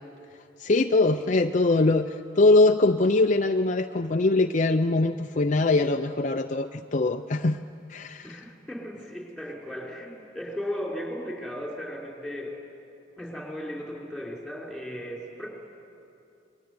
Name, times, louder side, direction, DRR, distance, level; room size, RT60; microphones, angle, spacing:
voice 1, 0.6-7.6 7.9-8.4, left 2 dB, 40° left, 6 dB, 0.6 m, -22 dB
voice 2, 8.2-12.5 13.2-15.5, equal, ahead, -1 dB, 4.8 m, -36 dB
28.0 x 22.5 x 9.5 m, 2.7 s
head